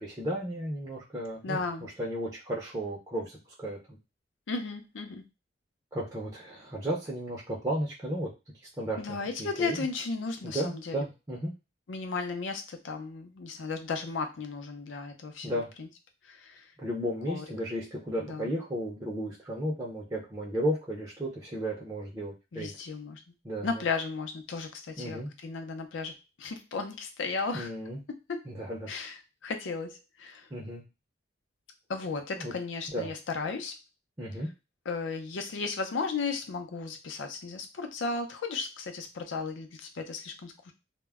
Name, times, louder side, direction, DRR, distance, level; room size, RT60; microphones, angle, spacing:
voice 1, 0.0-1.6 2.0-4.0 5.9-8.3 8.8-9.8 10.4-11.5 15.4-15.7 16.8-22.7 23.4-23.8 25.0-25.3 27.5-28.0 28.5-28.9 30.5-30.8 32.3-32.5 32.9-33.1 34.2-34.5, right 1 dB, 20° right, -4 dB, 0.5 m, -34 dB
voice 2, 1.4-1.9 4.5-5.2 9.0-11.0 11.9-15.9 16.2-16.7 17.3-17.4 18.2-18.5 22.5-23.2 23.6-27.7 28.3-28.4 28.9-29.2 29.4-30.5 31.9-33.7 34.9-40.7, left 4 dB, 85° left, 5 dB, 0.5 m, -35 dB
2.1 x 2.0 x 3.4 m, 0.27 s
head